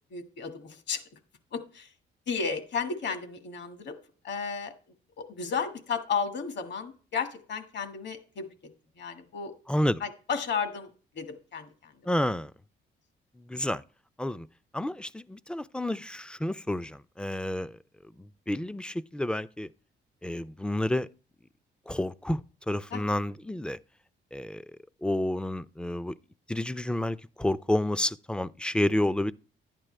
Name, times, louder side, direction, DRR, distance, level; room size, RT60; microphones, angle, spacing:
voice 1, 0.1-1.0 1.5-1.9 2.3-3.9 4.2-4.7 5.2-8.5 9.0-9.5 10.0-10.9 11.2-11.9 22.9-23.2, left 5 dB, 65° left, 1.8 m, -33 dB
voice 2, 9.7-10.0 12.1-12.5 13.5-13.8 14.2-14.5 14.7-17.8 18.2-19.7 20.2-21.1 21.9-23.8 24.3-24.6 25.0-26.1 26.5-29.3, left 1 dB, 5° left, 0.4 m, -30 dB
11.5 x 9.0 x 3.3 m
cardioid pair, 90°, 20 cm